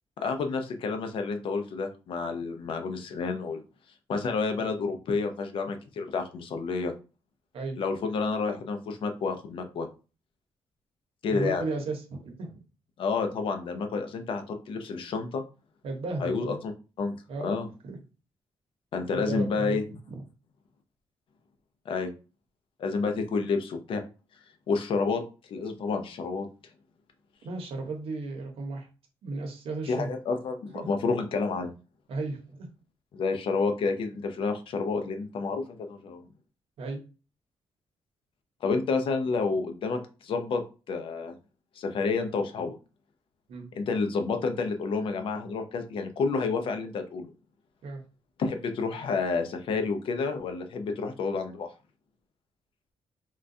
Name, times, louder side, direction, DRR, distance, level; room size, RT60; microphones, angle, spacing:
voice 1, 0.2-3.6 4.1-6.9 7.8-9.9 11.2-11.6 13.0-15.4 16.2-16.7 17.0-17.1 17.4-17.7 18.9-19.8 21.9-22.1 22.8-24.0 24.7-25.2 25.5-26.5 29.9-31.7 33.1-36.2 38.6-40.6 40.9-41.3 41.8-42.8 43.8-47.3 48.4-51.7, left 4 dB, 55° left, 6 dB, 0.5 m, -29 dB
voice 2, 11.3-12.6 15.8-16.6 17.3-17.6 17.8-18.0 19.1-19.8 20.1-20.2 27.4-28.9 29.2-30.1 30.7-30.9 32.1-32.7 36.8-37.0 43.5-43.7 47.8-48.0, right 3 dB, 65° right, 3 dB, 0.9 m, -34 dB
3.7 x 2.2 x 2.6 m, 0.33 s
wide cardioid pair, 170°, 10 cm